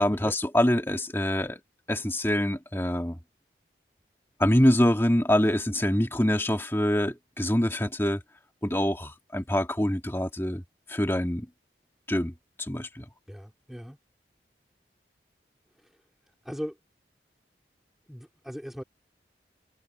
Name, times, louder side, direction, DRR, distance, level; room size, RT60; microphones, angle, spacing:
voice 1, 0.0-1.6 1.9-3.2 4.4-8.2 8.6-10.6 10.9-11.5 12.1-13.1, left 1 dB, 15° left, 2.2 m, -25 dB
voice 2, 13.3-14.0 16.4-16.7 18.1-18.8, equal, ahead, 4.8 m, -38 dB
head